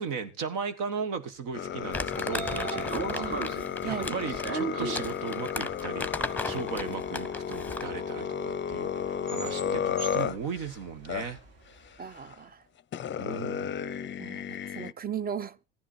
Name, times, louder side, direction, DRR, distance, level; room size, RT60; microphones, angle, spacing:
voice 1, 0.0-3.3 3.8-6.1 6.4-11.4 13.2-13.9, right 5 dB, 70° right, 1.5 m, -36 dB
sound 1, 1.5-10.7 11.1-11.3 12.3-12.4 12.9-14.9, left 8 dB, 35° left, 0.5 m, -33 dB
Train / Sliding door, 1.7-11.9, right 4 dB, 50° right, 3.1 m, -39 dB
Crumpling crinkling, 1.9-8.0, left 2 dB, 5° left, 0.9 m, -36 dB
voice 2, 12.0-12.6 14.2-15.6, right 8 dB, 30° right, 0.6 m, -36 dB
14.5 x 10.0 x 4.4 m
hypercardioid pair, 70°, 33 cm